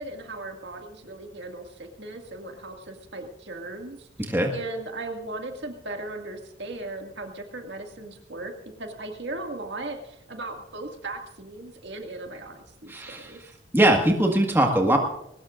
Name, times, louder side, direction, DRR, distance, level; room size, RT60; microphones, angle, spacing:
voice 1, 0.0-4.1 4.5-8.5 8.8-13.4, right 2 dB, 60° right, 3 dB, 2.1 m, -37 dB
voice 2, 4.2-4.5 12.9-13.3 13.7-15.0, right 1 dB, 10° right, 1 dB, 1.7 m, -21 dB
21.5 x 19.0 x 2.5 m, 0.84 s
head